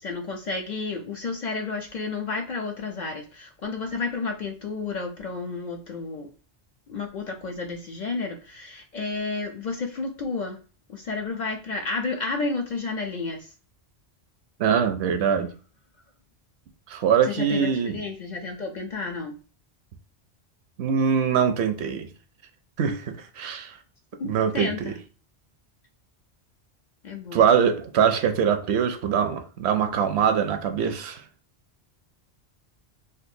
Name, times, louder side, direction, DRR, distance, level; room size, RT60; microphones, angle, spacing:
voice 1, 0.0-6.3 6.9-10.6 10.9-13.5 17.2-19.4 24.2-25.0 27.0-27.4, left 4 dB, 55° left, 0.5 m, -31 dB
voice 2, 14.6-15.5 16.9-18.0 20.8-22.1 22.8-23.8 24.3-24.9 27.3-31.2, right 7 dB, 75° right, 0.8 m, -23 dB
3.7 x 2.4 x 2.7 m
omnidirectional pair, 1.1 m